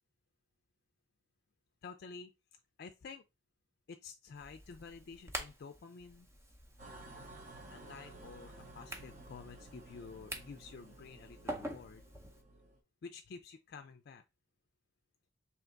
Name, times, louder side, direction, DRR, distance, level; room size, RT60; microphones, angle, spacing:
voice 1, 1.8-2.3 2.8-3.2 3.9-6.3 7.7-12.0 13.0-14.2, left 5 dB, 60° left, 0.4 m, -50 dB
sound 1, 4.3-12.4, right 1 dB, 15° right, 0.7 m, -48 dB
sound 2, 6.8-12.8, right 2 dB, 45° right, 1.0 m, -54 dB
3.4 x 2.8 x 3.8 m
head